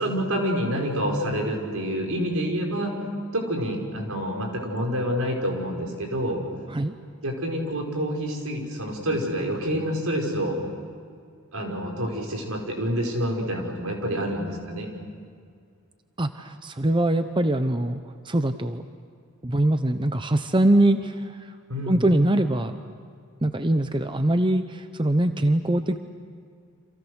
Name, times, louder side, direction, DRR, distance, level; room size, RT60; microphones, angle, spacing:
voice 1, 0.0-3.0 3.3-6.4 7.2-10.6 11.5-14.9 21.7-22.0, equal, 80° right, 2 dB, 5.3 m, -27 dB
voice 2, 16.2-18.0 18.2-18.8 19.4-21.5 21.9-22.8 23.4-26.0, right 1 dB, 20° right, 9 dB, 0.8 m, -23 dB
29.5 x 27.0 x 6.4 m, 2.2 s
head